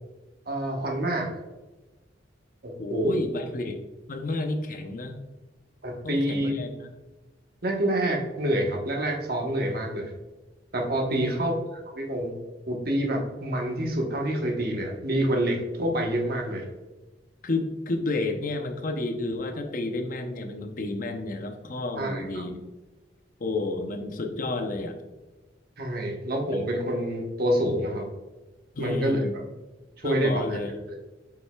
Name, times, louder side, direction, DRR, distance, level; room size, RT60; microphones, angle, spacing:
voice 1, 0.5-1.3 2.6-3.2 5.8-6.5 7.6-10.1 10.7-12.3 12.7-16.7 22.0-22.3 25.8-28.1 28.8-29.2 30.0-31.0, right 1 dB, 55° right, 1 dB, 1.1 m, -27 dB
voice 2, 2.8-3.8 4.1-5.2 6.0-6.9 11.0-11.4 17.4-22.6 23.4-25.0 28.7-29.3 30.0-30.7, left 2 dB, 50° left, 5 dB, 0.7 m, -31 dB
7.8 x 5.5 x 2.3 m, 1.1 s
head